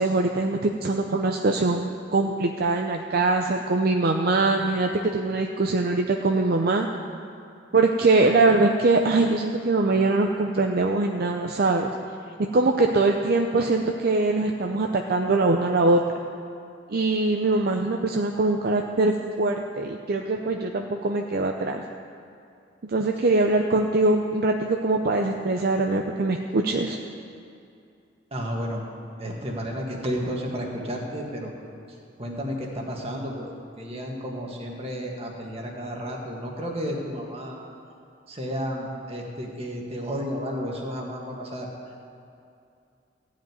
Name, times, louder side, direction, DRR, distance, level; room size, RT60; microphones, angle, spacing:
voice 1, 0.0-6.9 7.7-11.9 12.5-16.0 16.9-21.8 22.8-27.0, right 3 dB, 55° right, 3 dB, 0.6 m, -22 dB
voice 2, 28.3-28.8 29.2-31.5 32.2-37.6 38.3-41.7, equal, 35° right, -1 dB, 1.8 m, -32 dB
15.0 x 5.2 x 9.4 m, 2.5 s
head